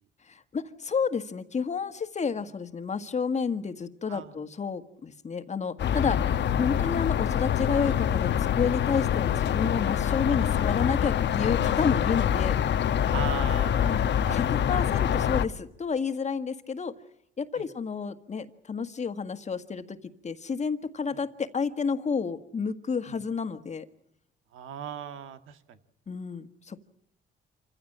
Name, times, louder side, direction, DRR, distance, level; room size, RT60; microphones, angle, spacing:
voice 1, 0.3-6.2 6.5-12.6 13.9-14.0 14.3-16.9 17.4-20.0 20.2-23.9 26.1-26.8, left 5 dB, 35° left, 9 dB, 1.6 m, -30 dB
sound 1, 5.8-15.5, left 9 dB, 65° left, 1.0 m, -25 dB
voice 2, 13.1-14.4 17.5-17.7 21.1-21.2 23.1-23.2 24.5-25.8, right 9 dB, 85° right, 9 dB, 1.8 m, -39 dB
27.0 x 15.5 x 8.8 m, 0.79 s
cardioid pair, 90°, 20 cm